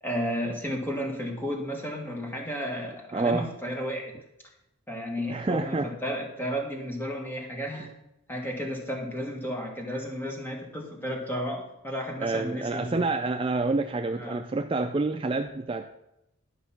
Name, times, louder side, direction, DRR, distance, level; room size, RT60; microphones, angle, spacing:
voice 1, 0.0-4.1 4.9-7.9 8.3-13.0 14.2-14.4, equal, 10° left, 0 dB, 1.6 m, -33 dB
voice 2, 3.1-3.5 5.3-5.9 7.8-7.9 12.2-16.0, right 3 dB, 25° right, 5 dB, 0.3 m, -28 dB
11.5 x 5.3 x 5.8 m, 0.86 s
head